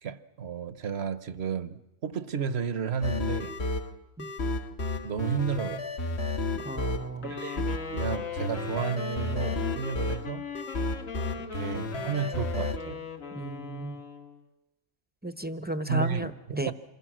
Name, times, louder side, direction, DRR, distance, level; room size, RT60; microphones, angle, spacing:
voice 1, 0.0-3.5 5.0-5.9 7.2-10.5 11.5-13.0 15.9-16.7, right 7 dB, 55° right, 1.1 m, -32 dB
sound 1, 3.0-12.8, left 2 dB, 55° left, 1.4 m, -32 dB
voice 2, 6.6-7.4 13.3-14.0 15.2-16.7, right 1 dB, 10° right, 0.7 m, -34 dB
Wind instrument woodwind instrument, 7.2-14.4, left 5 dB, 75° left, 2.3 m, -40 dB
27.0 x 21.5 x 6.2 m
omnidirectional pair, 1.4 m